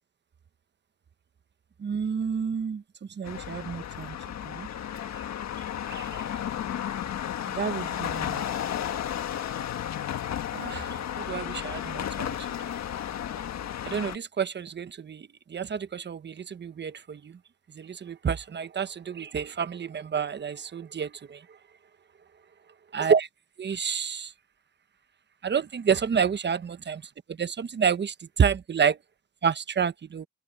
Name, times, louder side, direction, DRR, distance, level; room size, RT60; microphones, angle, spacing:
voice 1, 1.8-4.2 4.4-4.7 5.9-6.2 7.5-8.4 10.5-12.7 13.8-17.4 17.7-21.4 22.9-23.3 23.6-24.3 25.4-27.0 27.3-28.9 29.4-30.3, right 7 dB, 35° right, 1.1 m, -29 dB
sound 1, 3.2-14.2, left 10 dB, 60° left, 1.6 m, -33 dB
open air
cardioid pair, 90°, 30 cm